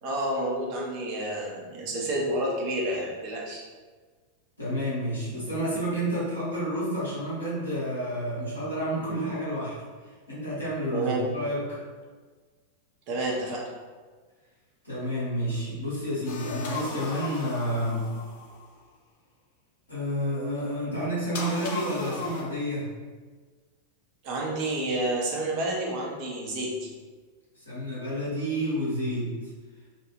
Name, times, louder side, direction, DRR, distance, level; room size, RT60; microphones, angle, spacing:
voice 1, 0.0-3.6 10.9-11.3 13.1-13.7 24.2-26.9, right 1 dB, 40° right, -3 dB, 0.5 m, -29 dB
voice 2, 4.6-9.8 10.3-11.8 14.8-18.1 19.9-22.9 27.7-29.4, equal, 80° left, -9 dB, 0.9 m, -30 dB
sound 1, 16.3-18.7 21.3-22.4, left 3 dB, 50° left, 0.5 m, -36 dB
2.3 x 2.3 x 3.0 m, 1.4 s
figure-of-eight pair, 90°, 0 cm